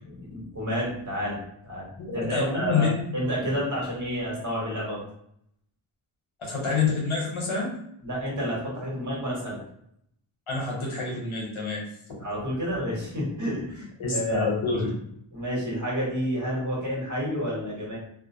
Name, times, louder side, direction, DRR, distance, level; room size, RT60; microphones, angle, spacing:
voice 1, 0.0-1.9 2.1-5.0 8.0-9.6 12.2-14.6 15.3-18.0, equal, 35° right, -5 dB, 1.3 m, -30 dB
voice 2, 2.0-2.9 6.4-7.8 10.5-11.8 14.0-14.9, left 4 dB, 75° left, -3 dB, 1.0 m, -27 dB
2.4 x 2.0 x 2.7 m, 0.72 s
wide cardioid pair, 50°, 50 cm